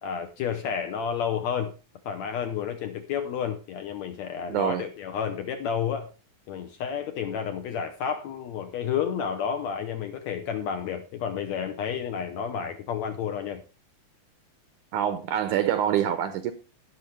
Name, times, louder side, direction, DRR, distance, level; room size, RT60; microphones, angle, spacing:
voice 1, 0.0-1.7 2.0-6.1 6.5-13.6, left 7 dB, 70° left, 1.7 m, -31 dB
voice 2, 4.5-4.8 14.9-16.5, right 10 dB, 75° right, 1.9 m, -25 dB
18.5 x 6.2 x 3.3 m
omnidirectional pair, 4.1 m